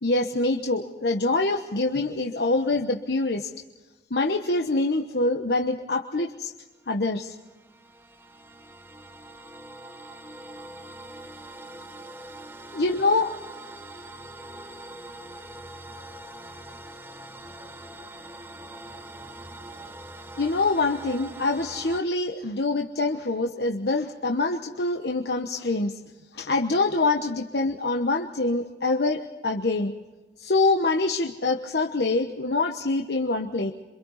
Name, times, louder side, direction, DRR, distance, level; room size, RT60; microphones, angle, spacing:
voice 1, 0.0-3.5 4.1-6.5 6.9-7.3 12.7-13.3 20.4-26.0 26.3-29.9 30.4-33.7, left 2 dB, 70° left, 3 dB, 1.1 m, -25 dB
sound 1, 6.8-22.0, right 1 dB, 15° right, 1.1 m, -43 dB
28.0 x 25.0 x 4.1 m, 1.2 s
head